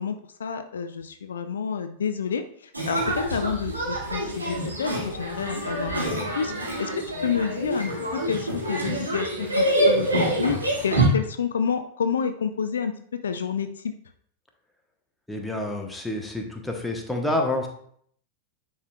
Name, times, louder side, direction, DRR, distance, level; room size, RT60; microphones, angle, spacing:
voice 1, 0.0-10.6 10.8-12.9 13.2-13.9, left 6 dB, 70° left, 9 dB, 0.4 m, -29 dB
sound 1, 2.7-11.1, right 1 dB, 80° right, 2.2 m, -26 dB
voice 2, 15.3-17.7, left 1 dB, 5° left, 2 dB, 1.0 m, -28 dB
10.0 x 4.3 x 2.3 m, 0.63 s
figure-of-eight pair, 90°, 0 cm